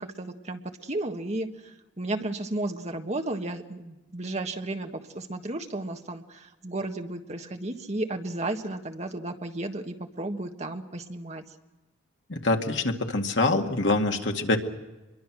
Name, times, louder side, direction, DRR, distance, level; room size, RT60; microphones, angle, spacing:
voice 1, 0.0-11.4, right 2 dB, 35° right, 5 dB, 1.6 m, -33 dB
voice 2, 12.3-14.6, left 2 dB, 75° left, 3 dB, 2.2 m, -25 dB
26.0 x 22.5 x 6.2 m, 1.1 s
head